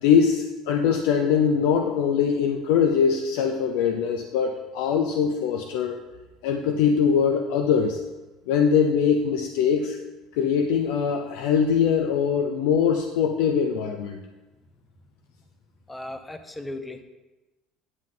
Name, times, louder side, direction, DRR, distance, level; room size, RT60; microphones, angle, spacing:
voice 1, 0.0-6.0 6.4-8.0 8.5-10.0 10.3-14.2, left 7 dB, 90° left, 4 dB, 0.7 m, -22 dB
voice 2, 15.9-17.0, left 1 dB, 10° left, 8 dB, 0.7 m, -36 dB
9.7 x 7.4 x 3.9 m, 1.1 s
cardioid pair, 145°, 0 cm